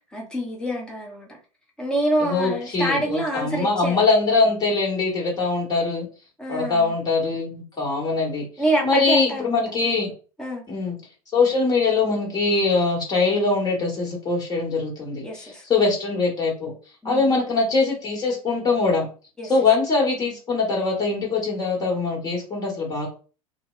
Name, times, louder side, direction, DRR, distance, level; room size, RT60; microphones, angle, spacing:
voice 1, 0.1-1.3 1.8-4.0 6.4-6.9 8.6-9.6 10.4-10.6 15.2-15.9 17.0-17.4 19.4-19.5, right 1 dB, 5° left, -2 dB, 0.9 m, -26 dB
voice 2, 2.2-6.1 6.5-8.4 8.8-10.1 10.7-11.0 11.3-16.7 17.0-19.1 19.5-23.1, left 3 dB, 20° left, -2 dB, 1.3 m, -22 dB
2.7 x 2.0 x 2.4 m, 0.35 s
figure-of-eight pair, 90°, 18 cm